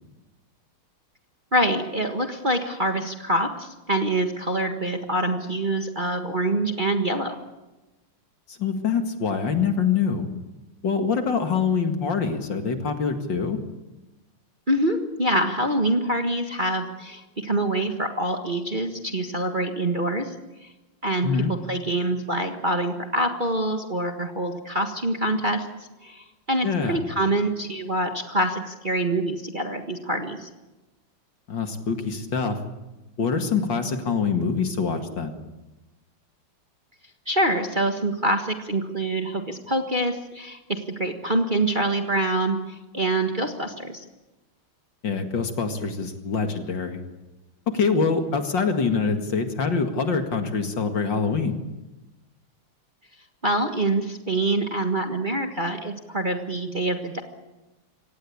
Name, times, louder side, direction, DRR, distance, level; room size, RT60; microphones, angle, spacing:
voice 1, 1.5-7.4 14.7-20.3 20.6-20.7 21.0-25.7 26.0-30.5 37.3-44.0 53.4-57.2, right 1 dB, 25° right, 4 dB, 1.5 m, -25 dB
voice 2, 8.5-10.3 10.8-13.6 21.2-21.5 26.6-27.0 31.5-32.6 33.2-35.3 45.0-47.0 47.7-51.6, left 5 dB, 60° left, 6 dB, 2.7 m, -25 dB
25.0 x 18.0 x 8.6 m, 1.1 s
omnidirectional pair, 2.3 m